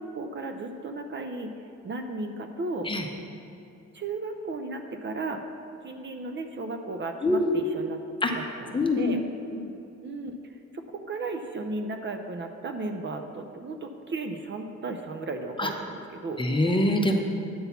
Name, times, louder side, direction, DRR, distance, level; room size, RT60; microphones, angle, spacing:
voice 1, 0.0-1.5 1.8-2.9 3.9-5.4 5.8-8.0 8.3-9.2 10.0-10.4 10.7-16.4, right 3 dB, 40° right, 5 dB, 0.6 m, -35 dB
voice 2, 7.2-7.6 8.2-9.2 9.5-9.7 15.6-15.7 16.4-17.2, left 1 dB, 15° left, 3 dB, 0.8 m, -25 dB
9.4 x 4.0 x 6.9 m, 2.6 s
cardioid pair, 90°, 30 cm